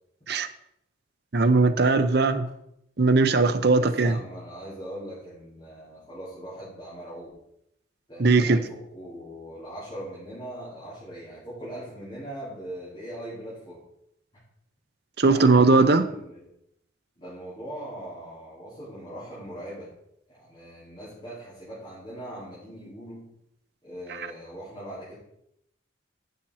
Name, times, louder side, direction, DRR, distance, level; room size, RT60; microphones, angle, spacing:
voice 1, 1.3-2.5 3.0-4.2 8.2-8.6 15.2-16.0 24.1-24.3, right 3 dB, 55° right, 10 dB, 0.7 m, -19 dB
voice 2, 3.8-7.4 8.1-13.8 15.1-16.5 17.2-19.9 20.3-23.3 23.8-25.1, right 1 dB, 25° left, -11 dB, 4.6 m, -40 dB
10.5 x 7.6 x 4.2 m, 0.77 s
head